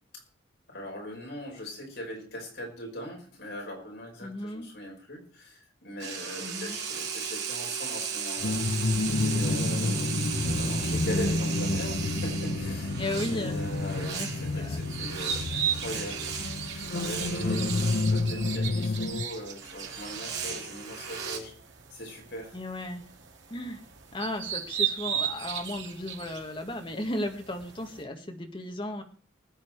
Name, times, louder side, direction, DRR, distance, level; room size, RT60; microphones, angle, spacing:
voice 1, 0.7-8.9 9.2-10.0 10.5-16.3 16.7-21.5 21.9-22.6, left 1 dB, 60° left, -1 dB, 5.8 m, -40 dB
voice 2, 4.2-4.7 6.4-6.8 9.6-10.0 13.0-13.6 14.0-14.8 17.4-17.8 22.5-23.1 23.5-23.8 24.1-29.0, left 1 dB, 25° left, 4 dB, 1.8 m, -35 dB
sound 1, 6.0-18.1 19.6-21.4, right 7 dB, 55° right, 3.8 m, -36 dB
sound 2, 8.4-19.2, left 2 dB, 80° left, 0.9 m, -29 dB
sound 3, 13.2-28.0, right 8 dB, 75° right, 2.1 m, -37 dB
20.0 x 8.8 x 4.7 m, 0.42 s
head